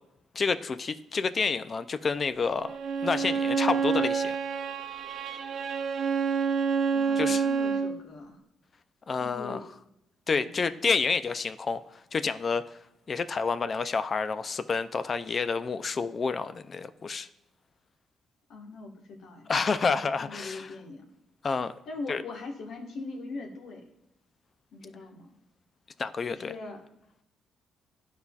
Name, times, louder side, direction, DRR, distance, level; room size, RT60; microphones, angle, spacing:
voice 1, 0.3-2.8 3.0-4.4 7.2-7.4 9.1-9.6 10.3-11.8 12.1-12.7 13.1-17.3 19.5-20.7 21.4-21.7 22.1-22.2 26.0-26.5, left 5 dB, 40° left, 12 dB, 0.3 m, -29 dB
Bowed string instrument, 2.6-8.0, right 6 dB, 60° right, 0.5 m, -28 dB
voice 2, 6.9-8.4 9.2-9.7 10.4-10.6 18.5-19.5 20.2-21.1 21.9-23.8 24.7-25.3 26.3-26.8, left 3 dB, 70° left, 1 dB, 1.3 m, -41 dB
11.5 x 4.1 x 2.3 m, 0.85 s
cardioid pair, 90°, 0 cm